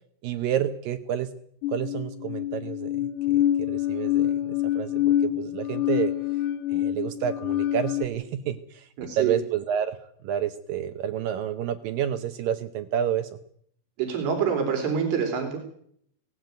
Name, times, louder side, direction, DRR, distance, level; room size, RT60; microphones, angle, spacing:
voice 1, 0.2-1.3 1.7-6.1 6.7-10.0 10.2-13.4, right 9 dB, 70° right, 10 dB, 2.3 m, -29 dB
sound 1, 1.6-8.1, left 12 dB, 70° left, 2.2 m, -26 dB
voice 2, 9.0-9.4 14.0-15.6, right 7 dB, 90° right, 4 dB, 5.3 m, -26 dB
18.0 x 17.5 x 9.2 m, 0.66 s
omnidirectional pair, 4.7 m